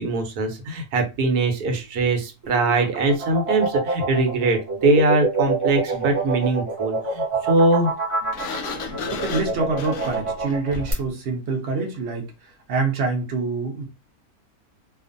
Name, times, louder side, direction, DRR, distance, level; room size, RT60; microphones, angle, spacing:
voice 1, 0.0-7.9, right 2 dB, 85° right, 1.2 m, -22 dB
sound 1, 2.4-10.9, right 3 dB, 25° right, 0.7 m, -26 dB
Sliding door, 8.3-11.1, left 3 dB, 65° left, 0.8 m, -33 dB
voice 2, 9.1-12.3 12.7-13.9, right 4 dB, 55° right, 0.8 m, -26 dB
2.5 x 2.4 x 2.5 m
omnidirectional pair, 1.6 m